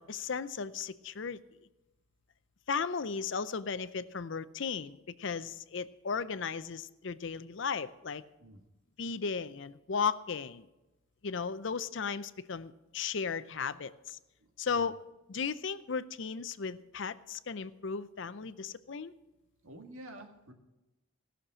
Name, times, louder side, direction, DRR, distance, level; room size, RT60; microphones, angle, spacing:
voice 1, 0.0-1.4 2.7-8.2 9.0-10.7 11.2-14.2 14.6-15.0 15.3-19.1, left 5 dB, 60° left, 14 dB, 0.5 m, -35 dB
voice 2, 19.6-20.5, right 1 dB, 80° right, 4 dB, 1.8 m, -49 dB
17.5 x 6.6 x 7.5 m, 1.0 s
head